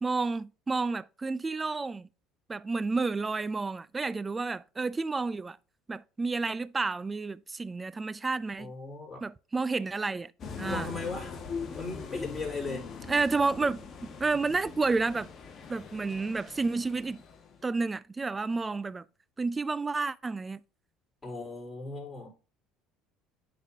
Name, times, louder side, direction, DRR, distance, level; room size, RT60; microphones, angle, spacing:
voice 1, 0.0-2.1 2.5-5.6 5.9-8.7 9.2-10.3 10.6-10.9 13.1-13.9 14.2-15.3 15.7-17.2 17.6-19.0 19.4-20.6, right 3 dB, 20° right, 0.3 m, -30 dB
voice 2, 8.6-9.2 10.6-11.3 11.7-12.9 21.2-22.3, left 3 dB, 20° left, 4.2 m, -37 dB
sound 1, 10.4-17.6, left 5 dB, 45° left, 1.4 m, -42 dB
10.0 x 4.1 x 2.8 m
supercardioid pair, 100°, 0 cm